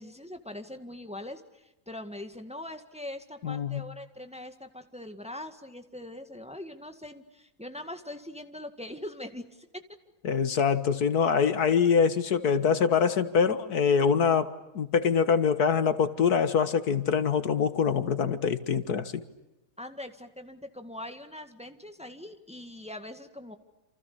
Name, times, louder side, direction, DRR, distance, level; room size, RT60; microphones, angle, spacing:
voice 1, 0.0-9.8 19.8-23.6, left 1 dB, 5° right, 7 dB, 1.9 m, -42 dB
voice 2, 3.4-3.8 10.2-19.2, left 6 dB, 85° left, 11 dB, 2.0 m, -24 dB
28.5 x 28.5 x 6.9 m, 0.94 s
omnidirectional pair, 1.6 m